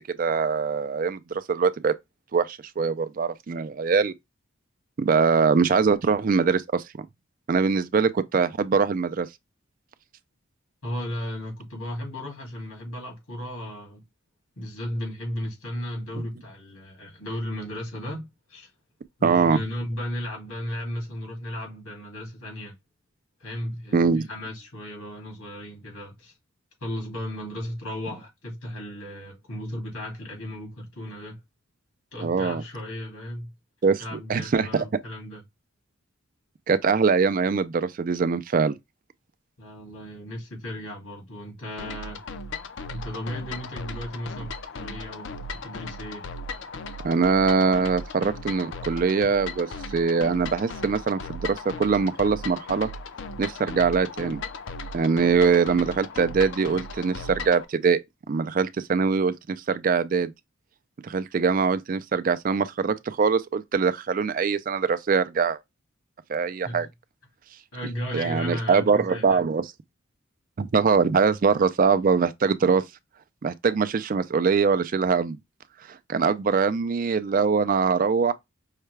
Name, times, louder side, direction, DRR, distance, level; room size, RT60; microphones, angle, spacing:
voice 1, 0.2-1.9 2.3-4.1 5.0-6.8 7.5-9.3 19.2-19.6 23.9-24.3 32.2-32.6 33.8-34.8 36.7-38.8 47.0-49.7 49.9-52.9 53.4-54.4 54.9-58.0 58.3-60.3 61.0-65.6 66.3-66.9 68.1-69.7 70.6-72.8 73.4-75.4 75.9-78.3, right 5 dB, 40° right, 0.3 m, -23 dB
voice 2, 10.8-14.0 14.6-18.7 19.2-22.7 23.4-26.4 26.8-31.4 32.1-33.5 34.0-35.4 39.6-42.2 42.9-46.3 66.6-66.8 67.7-69.4, equal, 90° left, 2.3 m, -35 dB
sound 1, 41.8-57.6, left 3 dB, 55° left, 0.5 m, -37 dB
5.6 x 2.2 x 3.2 m
head